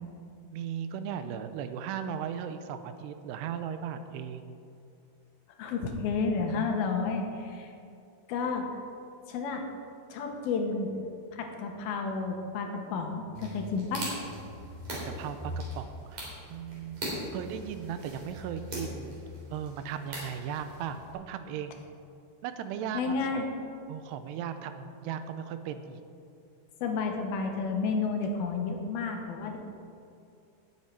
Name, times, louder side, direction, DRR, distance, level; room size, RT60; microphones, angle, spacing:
voice 1, 0.5-4.5 14.9-17.0 17.3-19.1 19.5-21.8 22.4-23.4 23.9-26.0, right 8 dB, 90° right, 9 dB, 2.8 m, -37 dB
voice 2, 5.6-7.7 8.3-8.7 9.3-9.6 10.1-10.9 11.3-14.1 22.9-23.5 26.8-29.6, left 4 dB, 75° left, 3 dB, 2.9 m, -31 dB
sound 1, 13.3-21.1, right 1 dB, 45° right, 4.5 m, -40 dB
19.0 x 7.4 x 4.7 m, 2.6 s
omnidirectional pair, 4.7 m